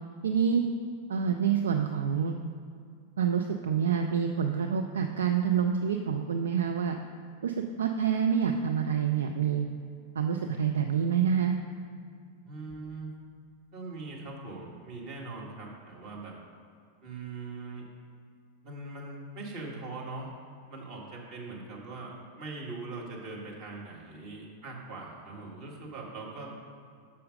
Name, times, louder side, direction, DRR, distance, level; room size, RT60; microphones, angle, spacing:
voice 1, 0.2-0.6 1.1-2.4 3.2-7.0 7.4-9.7 10.2-11.6, right 7 dB, 65° right, 5 dB, 0.3 m, -27 dB
voice 2, 12.4-13.1 13.7-16.3 17.0-17.9 18.6-20.3 20.7-26.5, right 3 dB, 45° right, -3 dB, 1.7 m, -41 dB
6.4 x 5.6 x 5.0 m, 2.3 s
figure-of-eight pair, 90°, 0 cm